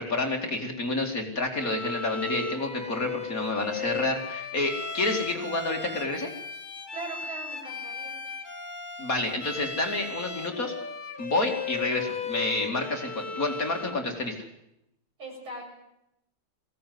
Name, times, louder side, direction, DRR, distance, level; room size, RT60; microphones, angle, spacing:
voice 1, 0.0-6.3 9.0-10.7 11.2-14.3, left 2 dB, 40° left, 2 dB, 2.8 m, -29 dB
Bowed string instrument, 1.5-14.1, left 5 dB, 25° left, 1.5 m, -36 dB
voice 2, 6.9-8.1 15.2-15.6, right 2 dB, 70° right, -1 dB, 8.8 m, -39 dB
22.5 x 17.0 x 9.5 m, 0.84 s
omnidirectional pair, 2.3 m